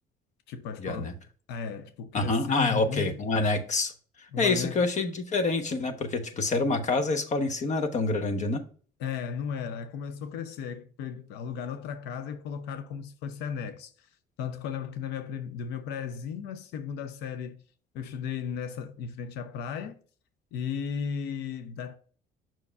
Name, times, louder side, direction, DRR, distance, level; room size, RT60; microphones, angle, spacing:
voice 1, 0.5-1.2 1.5-3.1 4.3-4.8 9.0-14.1 14.4-17.6 17.9-20.0 20.5-22.0, left 7 dB, 85° left, 0.6 m, -35 dB
voice 2, 2.1-3.9 4.4-8.6, left 3 dB, 45° left, 1.1 m, -27 dB
7.0 x 5.8 x 2.4 m
cardioid pair, 110°, 17 cm